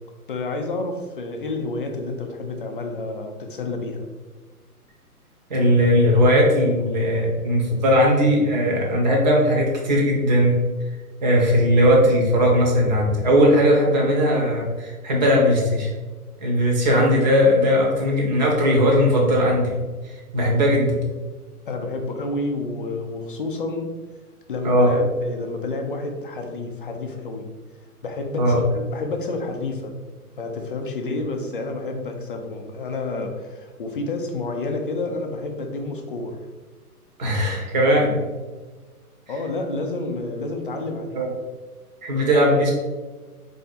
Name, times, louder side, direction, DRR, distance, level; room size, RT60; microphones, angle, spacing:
voice 1, 0.3-4.1 21.7-23.9 24.5-27.5 28.0-29.9 30.4-36.4 39.3-41.3, left 2 dB, 35° left, 4 dB, 0.5 m, -29 dB
voice 2, 5.5-10.6 11.2-15.9 16.4-19.8 20.0-21.0 24.6-24.9 28.4-28.6 37.2-38.2 41.1-41.3 42.0-42.7, equal, 30° right, -1 dB, 0.9 m, -18 dB
4.1 x 2.8 x 4.1 m, 1.3 s
figure-of-eight pair, 130°, 46 cm